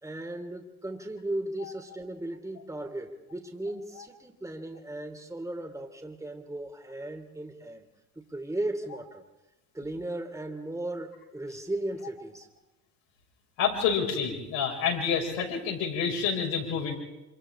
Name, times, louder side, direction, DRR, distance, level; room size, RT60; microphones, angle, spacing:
voice 1, 0.0-7.8 8.1-9.2 9.7-12.5, right 1 dB, 5° right, 3 dB, 3.0 m, -36 dB
voice 2, 13.6-17.0, left 6 dB, 65° left, 0 dB, 6.2 m, -28 dB
28.0 x 27.0 x 3.8 m, 1.0 s
hypercardioid pair, 65°, 46 cm